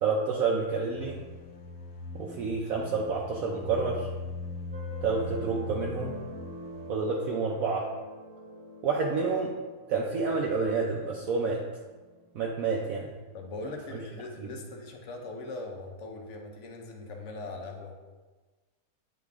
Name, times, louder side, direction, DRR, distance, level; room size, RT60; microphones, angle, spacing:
voice 1, 0.0-1.2 2.1-4.1 5.0-6.2 6.9-7.9 8.8-9.5 9.9-11.6 12.3-13.1, right 4 dB, 65° right, -1 dB, 1.0 m, -29 dB
sound 1, 0.9-6.9, left 3 dB, 75° left, 1.4 m, -40 dB
sound 2, 4.7-13.9, left 1 dB, 5° right, 0.6 m, -46 dB
voice 2, 13.3-18.0, left 2 dB, 55° left, 2 dB, 1.0 m, -40 dB
8.2 x 4.0 x 3.5 m, 1.3 s
omnidirectional pair, 1.7 m